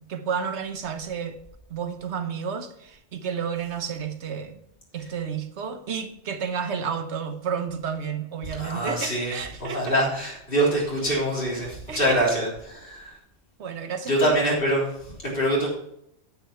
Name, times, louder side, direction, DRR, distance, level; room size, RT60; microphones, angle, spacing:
voice 1, 0.0-1.4 1.7-4.6 4.9-9.8 11.9-12.2 13.6-14.3, right 6 dB, 75° right, 8 dB, 1.2 m, -31 dB
voice 2, 8.6-9.3 9.6-13.2 14.1-15.7, right 1 dB, 55° left, -4 dB, 3.9 m, -24 dB
9.4 x 8.3 x 4.6 m, 0.76 s
omnidirectional pair, 1.2 m